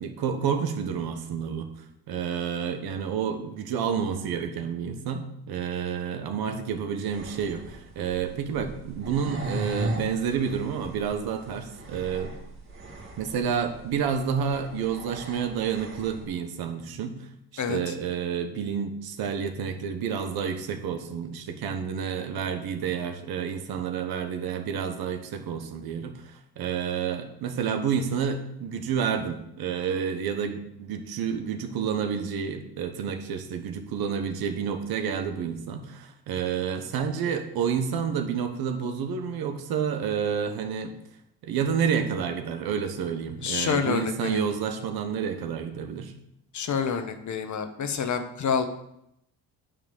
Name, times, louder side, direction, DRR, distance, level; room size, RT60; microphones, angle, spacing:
voice 1, 0.0-1.7 2.1-12.3 13.2-17.2 17.5-40.9 41.4-46.1, right 7 dB, 65° right, 7 dB, 1.2 m, -29 dB
sound 1, 7.1-16.3, right 1 dB, 30° right, 2.4 m, -38 dB
voice 2, 43.4-44.4 46.5-48.7, left 6 dB, 45° left, 8 dB, 1.0 m, -28 dB
9.0 x 3.6 x 6.8 m, 0.78 s
supercardioid pair, 80°, 39 cm